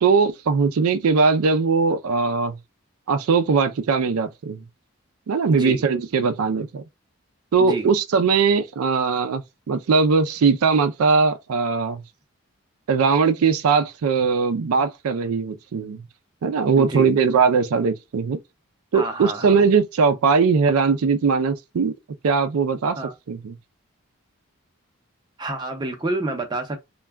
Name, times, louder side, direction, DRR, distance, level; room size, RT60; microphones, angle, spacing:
voice 1, 0.0-2.6 3.1-4.6 5.3-6.8 7.5-12.0 12.9-16.0 16.4-18.4 18.9-21.9 22.2-23.0 23.3-23.5, right 5 dB, 85° right, 0.4 m, -20 dB
voice 2, 5.5-5.9 7.6-7.9 16.8-17.1 18.9-19.6 22.9-23.1 25.4-26.8, right 2 dB, 20° right, 0.6 m, -29 dB
2.3 x 2.1 x 3.4 m
head